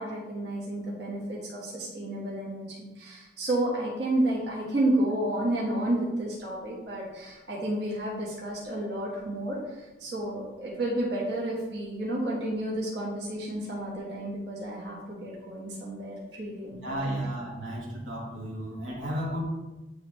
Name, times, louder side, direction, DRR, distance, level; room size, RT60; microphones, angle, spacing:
voice 1, 0.0-17.2, right 1 dB, 60° right, -6 dB, 1.6 m, -31 dB
voice 2, 16.8-19.4, right 1 dB, 85° right, -4 dB, 1.6 m, -33 dB
9.2 x 3.3 x 3.2 m, 1.1 s
head